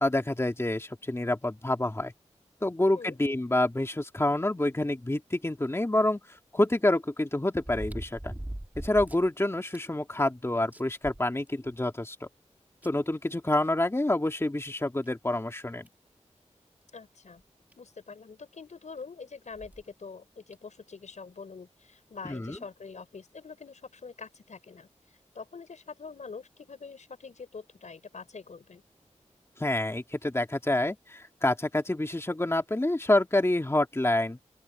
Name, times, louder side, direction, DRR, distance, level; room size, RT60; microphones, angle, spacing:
voice 1, 0.0-2.1 2.6-8.3 8.8-12.3 12.8-15.8 22.2-22.6 29.6-34.4, left 1 dB, 20° left, 2.1 m, -27 dB
sound 1, 5.6-5.7 7.6-9.3 9.7-9.8 10.3-10.4 10.7-11.8 12.8-12.9 14.4-14.5 15.0-15.1 15.9-16.1 17.4-17.5 17.7-17.8 19.5-19.8 20.5-20.6, right 1 dB, 15° right, 2.7 m, -40 dB
voice 2, 16.9-17.4 17.7-24.9 25.3-28.8, left 5 dB, 75° left, 5.9 m, -45 dB
open air
cardioid pair, 55°, 12 cm